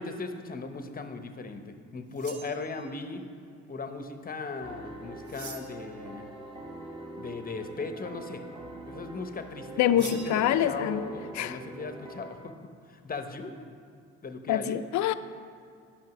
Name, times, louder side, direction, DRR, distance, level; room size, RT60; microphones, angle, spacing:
voice 1, 0.0-3.2 3.7-6.3 7.2-8.4 8.9-12.5 12.8-13.5 14.2-14.8, left 3 dB, 30° left, 7 dB, 0.8 m, -38 dB
sound 1, 2.1-3.1 5.2-5.9 10.0-10.4, right 6 dB, 70° right, 1.2 m, -45 dB
sound 2, 4.6-12.3, right 1 dB, 15° right, 1.3 m, -44 dB
voice 2, 9.8-11.0 11.4-11.6 14.5-15.1, left 10 dB, 70° left, 12 dB, 0.5 m, -25 dB
9.4 x 5.7 x 5.9 m, 2.3 s
cardioid pair, 90°, 30 cm